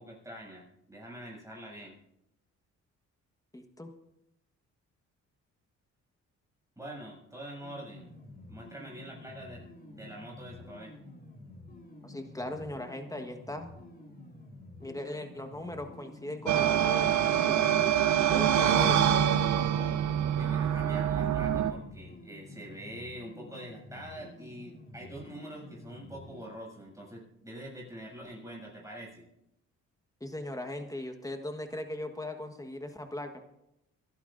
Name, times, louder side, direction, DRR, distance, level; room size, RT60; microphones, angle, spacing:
voice 1, 0.0-2.0 6.8-8.1 8.5-10.9 20.3-29.3, right 1 dB, 10° right, -2 dB, 7.1 m, -45 dB
voice 2, 3.5-3.9 12.0-13.7 14.8-17.7 18.3-19.2 30.2-33.3, left 1 dB, 10° left, 6 dB, 1.4 m, -38 dB
sound 1, 7.6-26.5, left 1 dB, 30° left, 4.2 m, -50 dB
sound 2, 16.5-21.7, right 10 dB, 70° right, 1.0 m, -25 dB
28.5 x 11.5 x 2.6 m, 0.84 s
cardioid pair, 90°, 30 cm